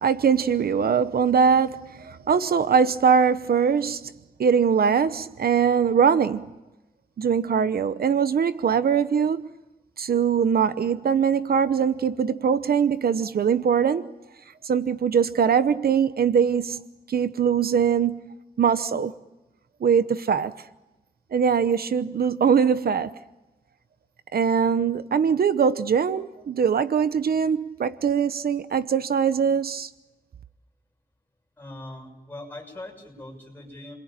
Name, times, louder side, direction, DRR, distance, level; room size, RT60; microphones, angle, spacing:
voice 1, 0.0-4.1 4.4-6.5 7.2-9.4 10.0-14.1 14.6-19.1 19.8-20.5 21.3-23.1 24.3-29.9, right 7 dB, 80° right, 0.9 m, -22 dB
voice 2, 31.6-34.0, left 1 dB, 10° left, 6.7 m, -41 dB
29.5 x 22.0 x 8.9 m
wide cardioid pair, 180°, 16 cm